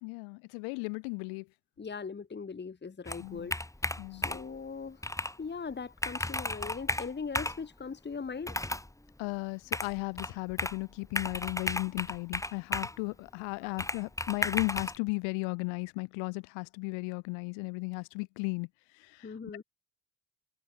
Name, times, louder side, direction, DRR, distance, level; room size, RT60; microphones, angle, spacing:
voice 1, 0.0-1.5 3.2-3.5 4.0-4.3 9.2-18.7 19.0-19.3, left 33 dB, 70° left, 3.9 m, -35 dB
voice 2, 1.8-3.6 4.1-5.0 5.4-8.6 13.6-13.8 19.2-19.6, left 5 dB, 20° left, 1.7 m, -40 dB
Computer keyboard, 3.1-4.6 5.0-5.4 5.7-5.8 6.0-7.6 8.4-8.9 9.7-10.8 11.2-13.0 13.8-15.0, left 1 dB, 5° left, 1.8 m, -34 dB
hypercardioid pair, 55°, 47 cm